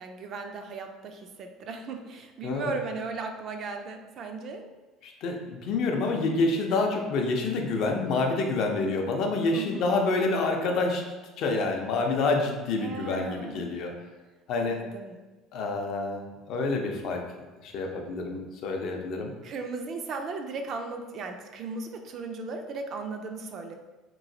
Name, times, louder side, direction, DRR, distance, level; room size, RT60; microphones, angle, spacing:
voice 1, 0.0-4.7 9.5-9.9 12.8-13.7 14.6-15.2 19.4-23.8, right 4 dB, 45° right, 5 dB, 0.3 m, -37 dB
voice 2, 2.4-2.7 5.0-11.0 11.4-13.9 14.5-14.8 15.5-17.2 17.6-19.3, left 3 dB, 60° left, 2 dB, 0.5 m, -27 dB
3.0 x 2.8 x 2.6 m, 1.2 s
cardioid pair, 140°, 0 cm